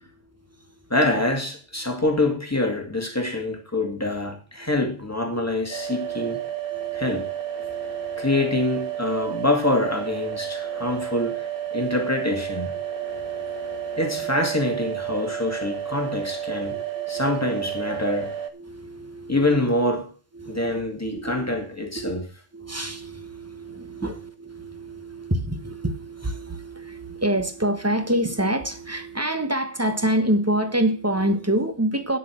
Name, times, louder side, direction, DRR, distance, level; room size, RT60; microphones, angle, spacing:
voice 1, 0.1-0.9 4.6-4.7 5.3-5.4 6.0-6.4 6.7-7.2 7.6-8.5 9.2-9.3 10.6-11.0 11.8-11.9 12.7-14.3 15.2-15.7 16.1-16.2 16.5-17.5 18.5-19.5 20.3-20.9 22.0-22.1 22.5-32.2, right 1 dB, 10° right, 1.1 m, -28 dB
voice 2, 0.9-6.4 6.9-7.3 8.2-12.8 14.0-16.7 17.1-18.3 19.3-20.1 20.5-22.3, left 1 dB, 10° left, 2.1 m, -25 dB
sound 1, 5.7-18.5, right 10 dB, 45° right, 1.3 m, -31 dB
10.0 x 7.9 x 6.1 m
omnidirectional pair, 1.4 m